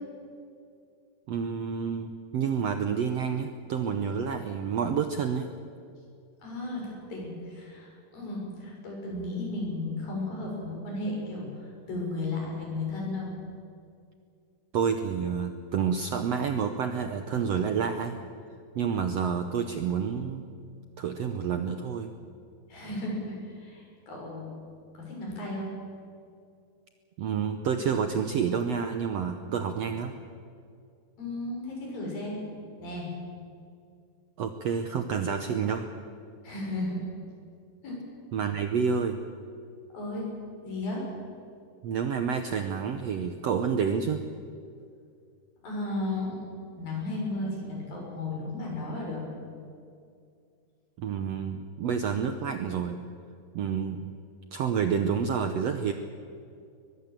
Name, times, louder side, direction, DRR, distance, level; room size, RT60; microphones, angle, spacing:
voice 1, 1.3-5.5 14.7-18.2 18.7-20.5 21.0-22.1 27.2-30.2 34.4-35.9 38.3-39.2 41.8-44.2 51.0-53.0 53.5-54.1 54.5-55.9, right 6 dB, 70° right, 7 dB, 1.5 m, -29 dB
voice 2, 6.4-13.3 22.7-24.6 24.9-25.7 31.2-32.4 32.8-33.1 36.4-37.0 37.8-38.0 39.9-40.3 40.6-41.0 45.6-46.4 46.8-49.2, left 2 dB, 75° left, -2 dB, 8.1 m, -34 dB
22.5 x 21.5 x 7.6 m, 2.4 s
omnidirectional pair, 4.1 m